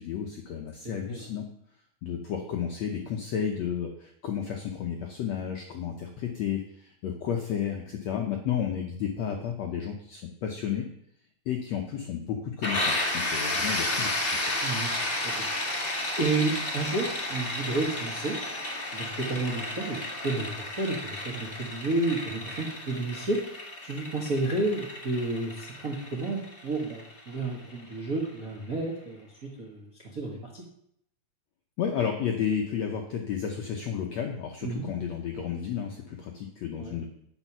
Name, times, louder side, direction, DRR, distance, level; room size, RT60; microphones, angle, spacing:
voice 1, 0.0-1.5 2.0-10.9 11.5-14.5 31.8-37.1, left 8 dB, 75° left, 3 dB, 1.6 m, -32 dB
voice 2, 0.8-1.3 14.6-15.0 15.2-15.4 16.2-18.4 18.9-23.4 23.8-30.6 34.6-34.9 36.8-37.0, right 2 dB, 50° right, -2 dB, 1.0 m, -31 dB
sound 1, 12.6-28.2, left 1 dB, 45° left, 0.7 m, -32 dB
8.7 x 8.0 x 6.0 m, 0.71 s
omnidirectional pair, 4.3 m